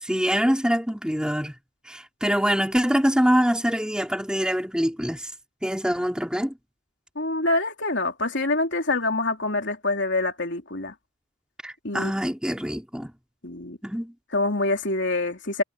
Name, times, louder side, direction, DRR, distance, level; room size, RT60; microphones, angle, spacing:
voice 1, 0.0-1.5 1.9-5.3 5.6-6.5 11.6-13.1 13.8-14.1, equal, 5° right, 3.9 m, -24 dB
voice 2, 7.2-10.9 11.8-12.1 13.4-13.8 14.3-15.6, left 2 dB, 55° left, 3.6 m, -25 dB
head